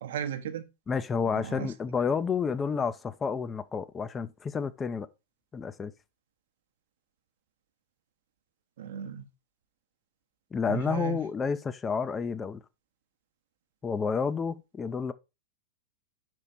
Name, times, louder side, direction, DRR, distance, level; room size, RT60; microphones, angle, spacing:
voice 1, 0.0-0.7 1.3-1.7 8.8-9.2 10.7-11.2, right 8 dB, 60° right, 0.8 m, -35 dB
voice 2, 0.9-5.1 5.5-5.9 10.5-12.6 13.8-15.1, left 5 dB, 20° left, 0.5 m, -30 dB
5.9 x 4.5 x 4.0 m
figure-of-eight pair, 90°, 0 cm